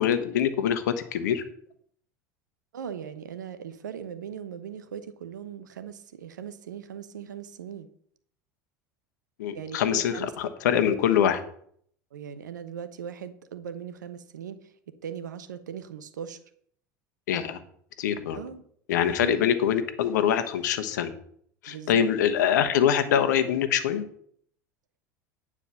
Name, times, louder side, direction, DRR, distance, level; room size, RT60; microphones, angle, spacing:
voice 1, 0.0-1.4 9.4-11.4 17.3-17.6 18.0-18.4 18.9-21.1 21.6-24.0, left 9 dB, 75° left, 10 dB, 1.1 m, -24 dB
voice 2, 2.7-7.9 9.5-10.3 12.1-14.7 15.0-16.4 18.3-18.6 19.2-19.5 21.7-22.0, right 8 dB, 80° right, 11 dB, 0.9 m, -39 dB
9.5 x 4.9 x 7.0 m, 0.64 s
hypercardioid pair, 80°, 10 cm